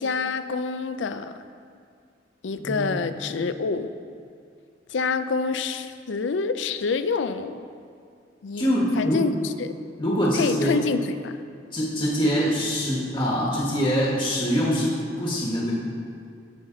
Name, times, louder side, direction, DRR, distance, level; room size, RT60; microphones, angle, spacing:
voice 1, 0.0-1.3 2.4-3.9 4.9-7.7 8.4-8.7 9.0-9.7 10.3-11.4, left 4 dB, 75° left, 11 dB, 0.5 m, -27 dB
voice 2, 8.6-9.2 10.0-10.7 11.7-15.7, equal, 30° left, -5 dB, 1.4 m, -24 dB
16.5 x 5.7 x 3.9 m, 2.4 s
head